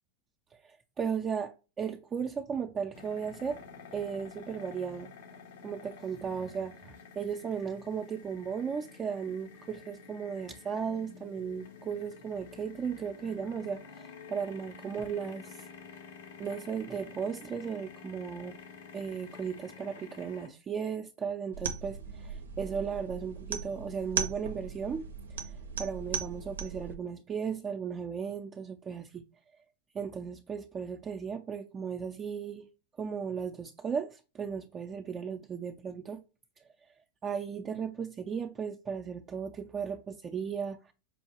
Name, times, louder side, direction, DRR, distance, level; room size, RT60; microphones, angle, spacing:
voice 1, 0.6-3.6 3.9-5.1 5.6-15.7 16.4-18.6 18.9-25.4 25.8-29.2 29.9-32.7 33.0-36.2 36.6-36.7 37.2-40.9, right 6 dB, 25° right, 0.4 m, -36 dB
sound 1, 2.9-20.5, left 6 dB, 70° left, 0.8 m, -50 dB
sound 2, 21.5-26.9, right 6 dB, 85° right, 0.5 m, -38 dB
5.3 x 2.3 x 2.9 m
hypercardioid pair, 105°, 0 cm